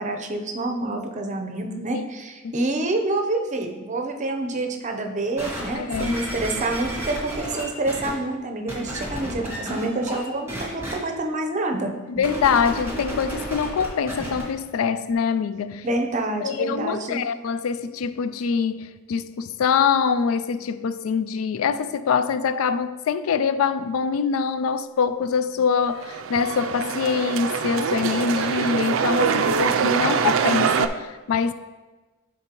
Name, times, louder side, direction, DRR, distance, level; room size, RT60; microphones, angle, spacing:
voice 1, 0.0-11.9 15.8-17.2, right 2 dB, 35° right, 0.7 m, -27 dB
sound 1, 5.4-8.1 8.7-10.2 10.5-10.9 12.2-14.4 15.1-15.2, right 1 dB, 10° right, 1.8 m, -32 dB
voice 2, 5.7-6.2 12.1-15.9 16.4-31.5, left 6 dB, 85° left, 0.4 m, -24 dB
sound 2, 25.9-30.9, right 6 dB, 65° right, 0.4 m, -23 dB
11.0 x 3.9 x 2.9 m
head